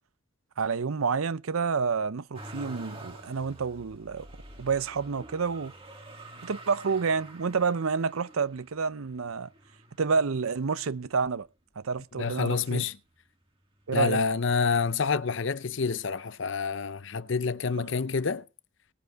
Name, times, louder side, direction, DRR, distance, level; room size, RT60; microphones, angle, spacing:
voice 1, 0.6-4.3 4.6-5.7 6.4-9.5 10.0-11.5 11.8-12.8 13.9-14.2, right 5 dB, 90° right, 0.6 m, -29 dB
Motor vehicle (road), 2.3-11.5 12.1-12.9 13.2-14.3 15.3-15.4, right 1 dB, 25° right, 1.7 m, -48 dB
voice 2, 12.2-13.0 13.9-18.4, left 5 dB, 65° left, 0.6 m, -28 dB
19.5 x 8.0 x 4.7 m
head